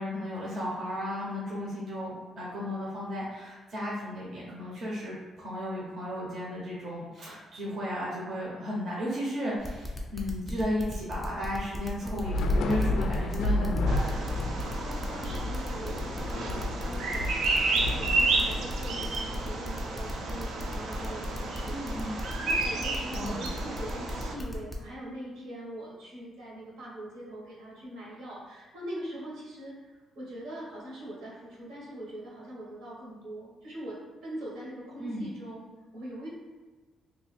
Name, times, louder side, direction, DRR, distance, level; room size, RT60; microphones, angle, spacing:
voice 1, 0.0-14.1 21.7-22.2 23.1-23.4 35.0-35.2, equal, 45° right, -5 dB, 0.8 m, -34 dB
sound 1, 9.6-24.7, equal, ahead, 0.5 m, -38 dB
Thunder / Rain, 12.2-19.7, left 2 dB, 70° left, 0.3 m, -32 dB
Bird vocalization bird call bird song, 13.9-24.4, right 3 dB, 60° right, 0.4 m, -32 dB
voice 2, 14.5-34.0 34.2-36.3, right 1 dB, 80° right, -5 dB, 1.4 m, -42 dB
2.8 x 2.4 x 4.2 m, 1.4 s
cardioid pair, 165°, 0 cm